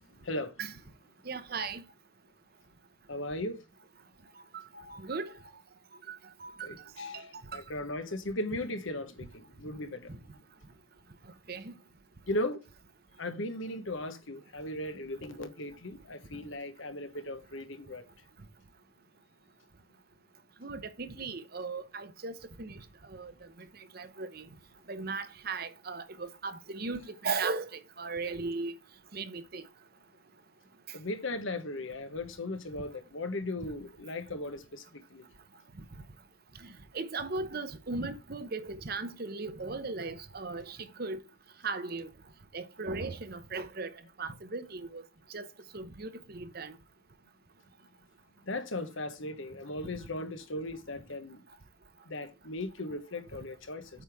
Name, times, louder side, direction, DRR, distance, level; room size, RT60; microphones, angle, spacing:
voice 1, 1.3-1.8 4.5-5.3 6.1-6.5 7.0-7.3 7.5-7.6 10.1-10.2 11.5-11.7 20.6-22.3 22.6-22.8 23.1-23.3 23.9-24.4 24.9-28.7 29.1-29.6 36.9-41.2 41.6-42.1 42.5-43.9 44.2-45.0 45.3-45.5 45.7-46.7, right 3 dB, 45° right, 0.8 m, -37 dB
voice 2, 3.1-3.6 6.6-10.1 12.3-12.6 13.2-18.0 30.9-35.2 48.4-51.4 52.1-53.9, left 1 dB, 70° left, 1.2 m, -37 dB
8.5 x 5.0 x 3.5 m
head